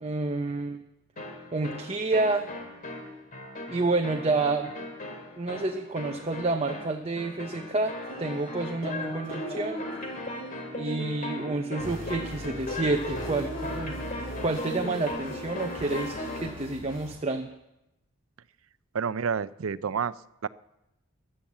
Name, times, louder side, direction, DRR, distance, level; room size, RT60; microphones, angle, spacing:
voice 1, 0.0-0.8 1.5-2.5 3.7-4.7 5.4-9.8 10.8-13.9 14.4-17.5, right 3 dB, 30° right, 4 dB, 0.7 m, -29 dB
sound 1, 1.2-16.6, left 1 dB, 40° left, 2.6 m, -37 dB
sound 2, 11.8-17.1, equal, 60° left, 4.4 m, -41 dB
voice 2, 18.9-20.5, right 6 dB, 70° right, 17 dB, 0.5 m, -30 dB
14.5 x 11.5 x 7.3 m, 0.91 s
head